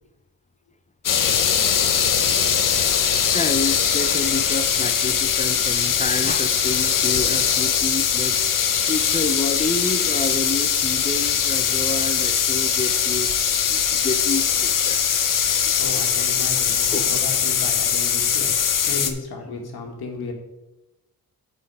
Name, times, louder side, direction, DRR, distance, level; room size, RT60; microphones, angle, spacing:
sound 1, 1.0-19.1, left 8 dB, 60° left, 0.8 m, -21 dB
voice 1, 3.0-15.0 15.6-16.0 16.8-17.1 19.5-19.6, left 3 dB, 20° left, 10 dB, 0.5 m, -29 dB
voice 2, 15.8-20.3, left 3 dB, 85° left, 2 dB, 1.8 m, -34 dB
9.5 x 4.5 x 4.7 m, 0.97 s
wide cardioid pair, 125°, 37 cm